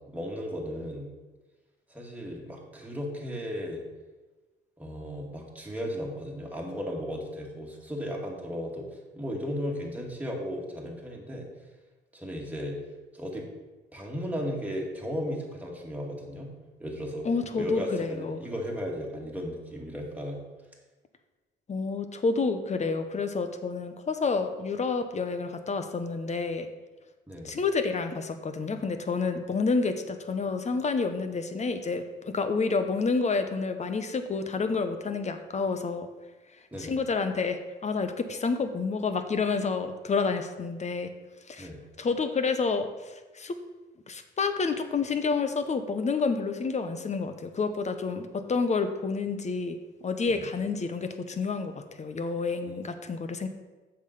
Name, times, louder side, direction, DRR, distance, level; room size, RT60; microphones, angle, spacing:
voice 1, 0.1-1.1 1.9-3.8 4.8-11.5 12.1-12.8 13.1-13.5 13.9-16.5 16.8-17.3 17.5-20.4 27.3-27.5 36.7-37.0 41.6-41.8 50.3-50.5 52.7-52.8, equal, 10° right, -2 dB, 2.2 m, -35 dB
voice 2, 17.2-18.4 21.7-26.7 27.4-36.1 36.8-41.1 41.5-41.7 42.0-43.6 44.1-49.8 50.0-51.7 52.0-53.5, left 4 dB, 35° left, 8 dB, 1.0 m, -29 dB
7.2 x 5.9 x 6.6 m, 1.2 s
cardioid pair, 90°, 20 cm